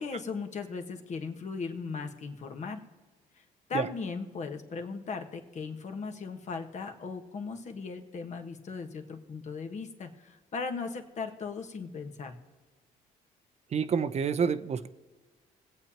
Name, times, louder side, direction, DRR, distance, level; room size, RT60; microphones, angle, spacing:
voice 1, 0.0-2.8 3.4-3.5 3.7-12.4, left 4 dB, 50° left, 6 dB, 1.4 m, -38 dB
voice 2, 13.7-14.9, right 6 dB, 45° right, 12 dB, 0.6 m, -28 dB
20.5 x 8.6 x 2.9 m, 1.3 s
cardioid pair, 85°, 16 cm